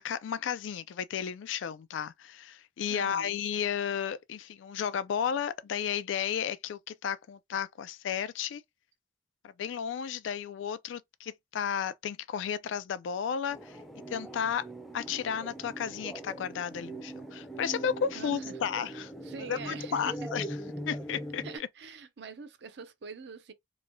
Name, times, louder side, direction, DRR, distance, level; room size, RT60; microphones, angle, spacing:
voice 1, 0.0-8.6 9.4-13.8 14.1-14.7 14.9-19.1 19.5-20.5 20.9-21.7, left 8 dB, 85° left, 0.3 m, -33 dB
voice 2, 2.9-3.4 18.1-18.5 19.2-20.3 21.4-23.5, right 4 dB, 65° right, 0.5 m, -44 dB
sound 1, 13.5-21.6, right 1 dB, ahead, 0.5 m, -41 dB
3.0 x 2.2 x 2.5 m
head